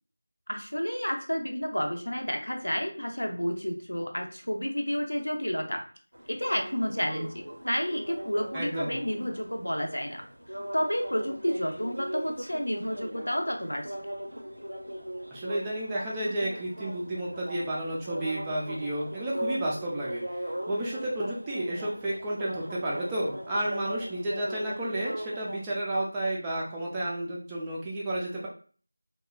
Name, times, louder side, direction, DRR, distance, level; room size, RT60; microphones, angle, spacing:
voice 1, 0.5-5.8 6.3-10.2 10.7-13.9, equal, 80° left, 3 dB, 0.6 m, -30 dB
sound 1, 6.1-25.6, right 1 dB, 85° right, 0.6 m, -39 dB
voice 2, 8.5-9.0 15.3-28.5, right 1 dB, 10° right, -5 dB, 0.3 m, -32 dB
2.8 x 2.1 x 2.3 m, 0.42 s
figure-of-eight pair, 170°, 0 cm